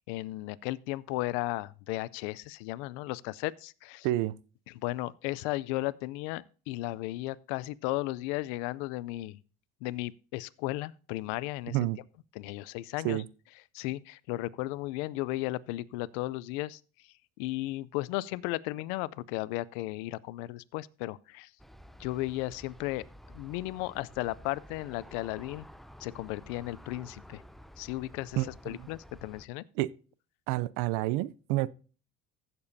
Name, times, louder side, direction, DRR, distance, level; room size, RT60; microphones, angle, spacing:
voice 1, 0.1-4.1 4.8-9.4 9.8-11.8 12.4-13.2 13.7-16.8 17.4-21.5 22.0-25.7 26.0-27.4 27.8-28.4 28.7-29.6, left 18 dB, 85° left, 0.5 m, -35 dB
voice 2, 4.0-4.3 11.7-12.0 13.0-13.3 28.4-28.9 29.8-29.9 30.5-31.7, right 17 dB, 80° right, 0.6 m, -29 dB
Aircraft, 21.6-29.5, equal, ahead, 0.5 m, -51 dB
15.5 x 7.0 x 2.7 m
supercardioid pair, 80°, 33 cm